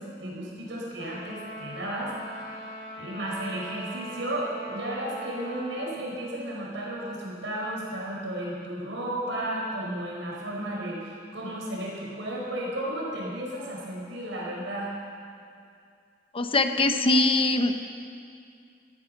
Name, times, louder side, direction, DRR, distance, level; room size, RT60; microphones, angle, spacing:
voice 1, 0.0-2.7 3.0-14.9, right 1 dB, 80° right, -4 dB, 5.2 m, -33 dB
Trumpet, 1.0-6.0, equal, 50° left, 2.4 m, -41 dB
voice 2, 16.3-17.9, left 2 dB, 30° left, 7 dB, 0.8 m, -22 dB
14.5 x 14.0 x 6.7 m, 2.4 s
head